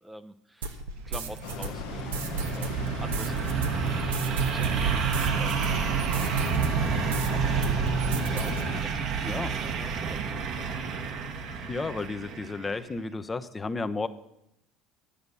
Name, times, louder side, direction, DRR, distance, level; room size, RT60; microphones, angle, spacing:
voice 1, 0.0-0.7 1.0-2.7 3.0-3.6 4.3-6.8 7.3-7.6 8.2-10.2, right 1 dB, 10° right, 10 dB, 0.7 m, -45 dB
sound 1, 0.6-7.3 7.6-8.6, right 3 dB, 85° right, 1.1 m, -36 dB
sound 2, 1.0-12.7, right 6 dB, 60° right, 1.4 m, -29 dB
sound 3, 1.4-8.8, left 9 dB, 75° left, 0.9 m, -39 dB
voice 2, 11.7-14.1, left 3 dB, 25° left, 10 dB, 0.9 m, -32 dB
11.5 x 7.8 x 7.0 m, 0.79 s
hypercardioid pair, 75°, 0 cm